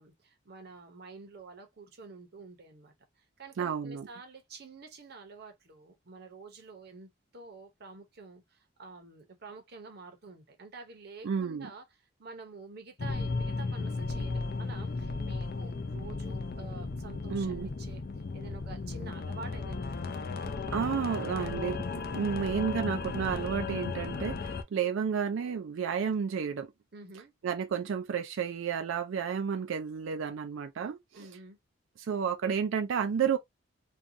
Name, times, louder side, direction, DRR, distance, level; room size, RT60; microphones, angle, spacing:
voice 1, 0.0-11.8 12.2-18.0 18.3-20.2 26.9-27.3 31.1-31.6, right 4 dB, 50° right, 0.7 m, -49 dB
voice 2, 3.6-4.1 11.2-11.7 17.3-17.7 20.7-21.9 22.1-26.7 27.4-31.3 32.0-33.4, right 7 dB, 75° right, 0.4 m, -31 dB
sound 1, 13.0-24.6, left 4 dB, 50° left, 0.4 m, -35 dB
2.6 x 2.3 x 2.6 m
head